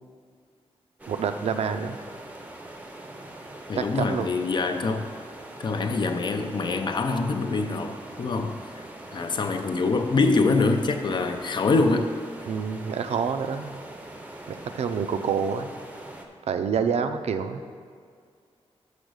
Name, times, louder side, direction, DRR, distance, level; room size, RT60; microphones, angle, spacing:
sound 1, 1.0-16.3, right 1 dB, 15° right, 0.6 m, -42 dB
voice 1, 1.1-2.0 3.8-4.3 12.5-13.8 14.5-15.7 16.5-17.6, right 6 dB, 75° right, 8 dB, 0.5 m, -27 dB
voice 2, 3.7-5.1 5.6-8.8 9.1-12.1, left 3 dB, 45° left, 6 dB, 0.5 m, -25 dB
6.3 x 5.2 x 6.3 m, 2.1 s
wide cardioid pair, 140°, 11 cm